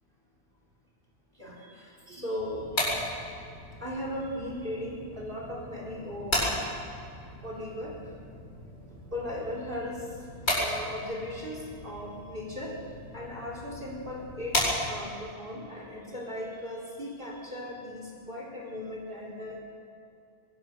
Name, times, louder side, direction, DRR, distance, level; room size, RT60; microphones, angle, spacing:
voice 1, 1.4-2.7 3.8-6.5 7.4-7.9 9.1-10.1 10.6-12.7 13.1-19.6, left 1 dB, 55° right, -2 dB, 4.4 m, -37 dB
sound 1, 2.4-15.3, left 1 dB, 80° left, 7.8 m, -35 dB
23.0 x 21.5 x 6.9 m, 2.5 s
omnidirectional pair, 1.1 m